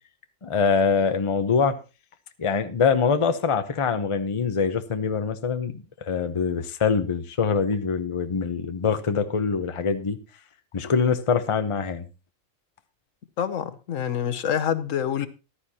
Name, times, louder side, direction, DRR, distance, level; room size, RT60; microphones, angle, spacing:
voice 1, 0.4-1.7 2.4-10.2 10.7-12.1, left 5 dB, 30° left, 0.8 m, -24 dB
voice 2, 13.4-15.3, left 9 dB, 75° left, 1.2 m, -26 dB
14.5 x 11.5 x 2.9 m
omnidirectional pair, 1.4 m